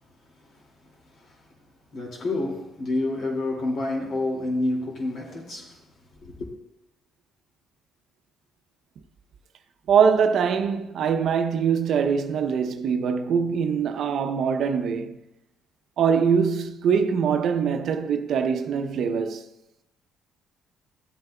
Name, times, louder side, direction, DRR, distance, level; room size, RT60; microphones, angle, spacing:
voice 1, 1.9-5.8 6.2-6.5, left 2 dB, 55° left, 2.4 m, -28 dB
voice 2, 9.9-15.2 16.0-19.4, right 6 dB, 65° right, 0.6 m, -23 dB
15.5 x 8.0 x 2.3 m
supercardioid pair, 70°, 0 cm